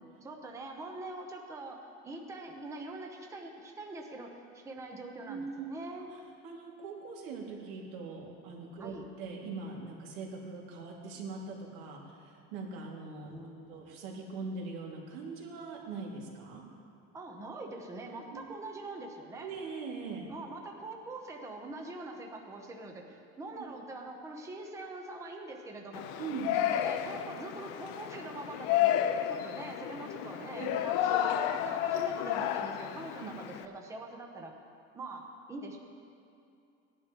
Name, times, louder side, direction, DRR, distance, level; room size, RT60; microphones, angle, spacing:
voice 1, 0.2-6.1 8.8-9.0 13.2-14.0 17.1-19.5 20.3-26.2 26.5-34.6 34.9-35.8, right 2 dB, 10° right, 1 dB, 0.8 m, -44 dB
voice 2, 5.3-5.7 6.4-13.4 13.7-16.6 18.3-18.4 19.4-20.3 23.6-23.7 26.2-26.5 30.4-30.7 33.2-33.3, right 4 dB, 75° right, -1 dB, 2.3 m, -41 dB
Yell, 25.9-33.6, left 11 dB, 85° left, 0.7 m, -32 dB
18.5 x 11.0 x 3.0 m, 2.6 s
cardioid pair, 180°, 29 cm